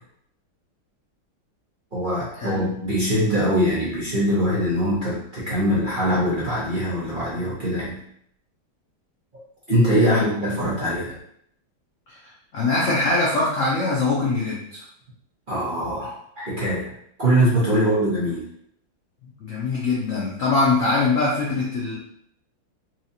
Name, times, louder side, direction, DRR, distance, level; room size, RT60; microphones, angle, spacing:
voice 1, 1.9-8.0 9.3-9.4 9.7-11.2 15.5-16.9 17.2-18.5, equal, 30° right, -9 dB, 0.9 m, -22 dB
voice 2, 12.5-14.8 19.2-21.9, left 3 dB, 80° left, -5 dB, 0.7 m, -23 dB
4.5 x 2.4 x 2.8 m, 0.69 s
omnidirectional pair, 2.3 m